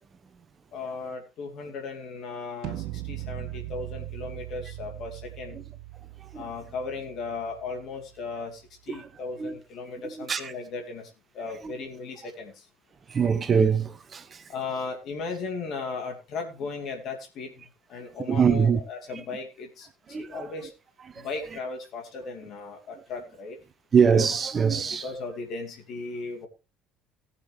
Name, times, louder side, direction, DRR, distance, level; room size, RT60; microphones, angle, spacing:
voice 1, 0.7-5.6 6.3-12.7 14.5-17.5 17.9-19.9 20.2-20.7 21.2-23.6 24.7-26.5, left 4 dB, 55° left, 2.5 m, -36 dB
sound 1, 2.6-8.6, right 16 dB, 60° right, 0.7 m, -40 dB
voice 2, 10.0-10.5 11.6-11.7 13.1-14.4 18.3-18.8 20.1-20.5 21.1-21.3 23.9-25.1, right 6 dB, 35° right, 1.1 m, -23 dB
18.5 x 6.8 x 3.3 m
figure-of-eight pair, 60°, 0 cm